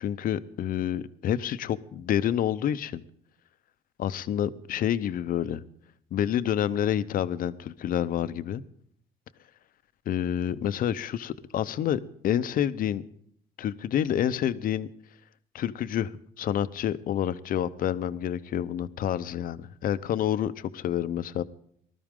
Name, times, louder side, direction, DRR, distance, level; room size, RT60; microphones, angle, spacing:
voice 1, 0.0-3.0 4.0-5.6 6.1-8.6 10.1-13.0 13.6-14.9 15.5-21.4, left 10 dB, 55° left, 14 dB, 0.7 m, -28 dB
19.5 x 13.0 x 3.7 m, 0.65 s
cardioid pair, 110°, 17 cm